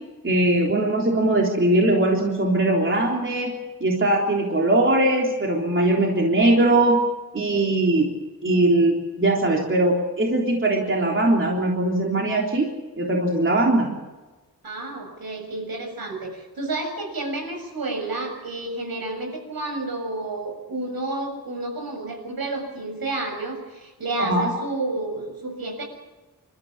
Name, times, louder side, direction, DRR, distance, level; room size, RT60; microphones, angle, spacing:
voice 1, 0.2-3.5 3.8-7.0 7.3-8.1 8.4-12.7 13.0-13.9 24.2-24.5, right 1 dB, 35° right, -1 dB, 3.6 m, -20 dB
voice 2, 14.6-25.8, right 2 dB, 75° right, 3 dB, 7.2 m, -30 dB
28.5 x 14.0 x 8.7 m, 1.2 s
wide cardioid pair, 175°, 37 cm